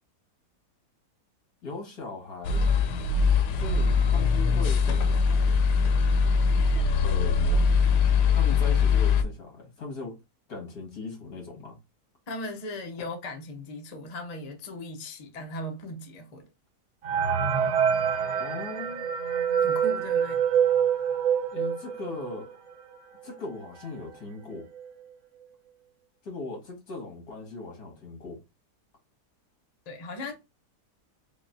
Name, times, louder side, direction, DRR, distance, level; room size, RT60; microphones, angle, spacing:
voice 1, 1.6-2.6 3.5-5.6 7.0-7.7 8.3-10.2 10.5-11.8 13.0-13.1 18.4-19.1 21.5-22.6 23.2-24.7 26.2-28.4, left 3 dB, 65° left, 2.1 m, -39 dB
sound 1, 2.4-9.2, left 5 dB, 85° left, 1.2 m, -22 dB
voice 2, 12.3-16.5 19.6-20.4 29.9-30.3, left 1 dB, 40° left, 0.6 m, -38 dB
sound 2, 17.0-22.5 22.9-23.0 23.2-23.4 24.1-24.2 24.6-24.9, right 8 dB, 65° right, 1.1 m, -26 dB
5.0 x 2.4 x 2.6 m
omnidirectional pair, 1.7 m